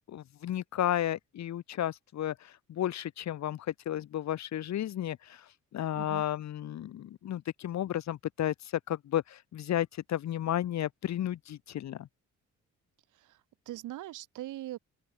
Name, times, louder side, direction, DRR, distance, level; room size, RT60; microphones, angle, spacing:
voice 1, 0.0-5.4 5.7-8.5 8.9-12.1, left 11 dB, 65° left, 1.3 m, -33 dB
voice 2, 13.1-14.8, right 15 dB, 85° right, 5.0 m, -41 dB
open air
cardioid pair, 90°, 30 cm